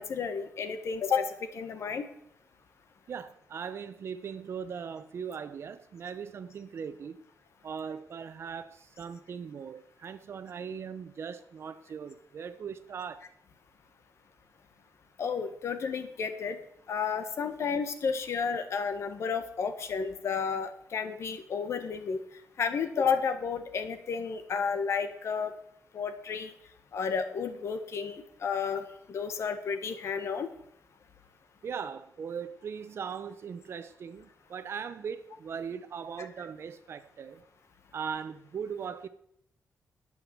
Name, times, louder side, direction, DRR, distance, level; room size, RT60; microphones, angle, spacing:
voice 1, 0.0-2.0 15.2-16.6 16.9-22.2 22.6-25.5 25.9-26.5 26.9-30.5, left 6 dB, 60° left, 1.5 m, -32 dB
voice 2, 3.1-7.2 7.6-13.2 31.6-37.5 37.9-39.1, right 7 dB, 55° right, 0.9 m, -39 dB
11.5 x 9.0 x 7.6 m
wide cardioid pair, 160°, 5 cm